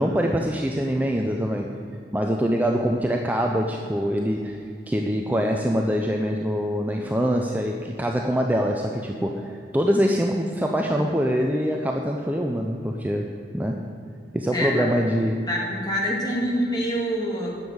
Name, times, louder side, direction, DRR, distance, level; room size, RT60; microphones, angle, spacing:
voice 1, 0.0-1.8 2.1-4.6 4.9-13.3 13.5-13.9 14.3-15.5, equal, 10° right, 1 dB, 0.5 m, -24 dB
voice 2, 14.5-14.9 15.5-17.5, equal, 20° left, -2 dB, 2.1 m, -25 dB
9.9 x 7.2 x 8.6 m, 2.6 s
head